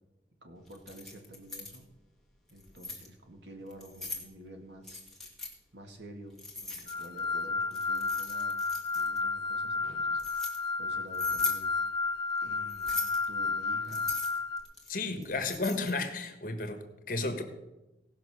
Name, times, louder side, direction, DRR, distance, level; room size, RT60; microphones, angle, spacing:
voice 1, 0.4-1.9 2.5-5.0 5.7-8.6 8.9-10.2 10.8-11.7 12.4-14.1 15.0-15.5, right 1 dB, 75° right, 4 dB, 2.1 m, -49 dB
Keys jangling, 0.7-1.8 2.5-3.1 3.7-4.3 4.8-5.5 6.4-7.2 7.7-9.2 9.8-10.6 11.1-11.6 12.7-13.3 13.9-16.0, left 3 dB, ahead, 1.9 m, -39 dB
sound 1, 6.9-14.6, left 4 dB, 25° left, 0.7 m, -32 dB
voice 2, 14.9-17.4, left 3 dB, 50° left, 7 dB, 1.4 m, -33 dB
17.5 x 6.0 x 6.5 m, 1.0 s
head